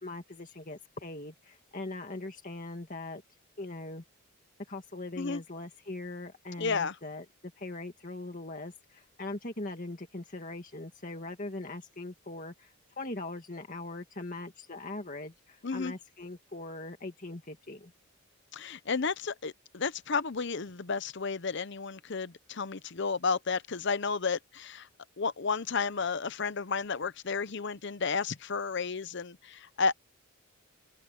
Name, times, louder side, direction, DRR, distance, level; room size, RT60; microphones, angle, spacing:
voice 1, 0.0-3.2 3.6-4.0 4.7-7.3 7.6-17.9, left 2 dB, 40° left, 2.0 m, -41 dB
voice 2, 6.6-6.9 15.6-15.9 18.5-24.9 25.2-29.9, left 5 dB, 55° left, 0.7 m, -32 dB
open air
head